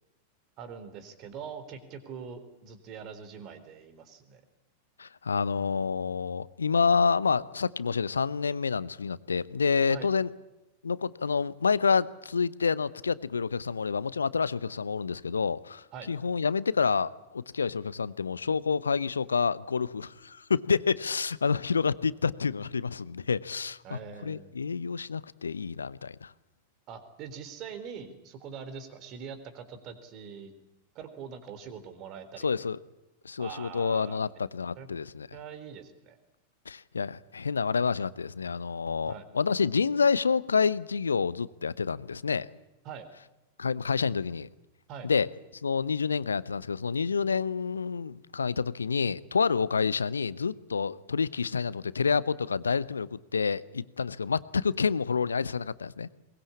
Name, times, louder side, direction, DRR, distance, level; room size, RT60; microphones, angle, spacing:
voice 1, 0.6-4.4 9.9-10.1 15.9-16.1 23.8-24.5 26.9-30.5 31.0-32.5 33.4-34.2 34.8-34.9 35.3-36.2 39.1-39.2 42.8-43.1 44.9-45.1, right 7 dB, 40° right, 3.8 m, -43 dB
voice 2, 5.0-10.3 10.8-26.3 32.4-32.8 33.2-35.3 36.7-42.5 43.6-44.5 45.0-45.3 45.6-56.1, left 5 dB, 75° left, 0.8 m, -28 dB
22.5 x 21.0 x 8.6 m
figure-of-eight pair, 90°, 0 cm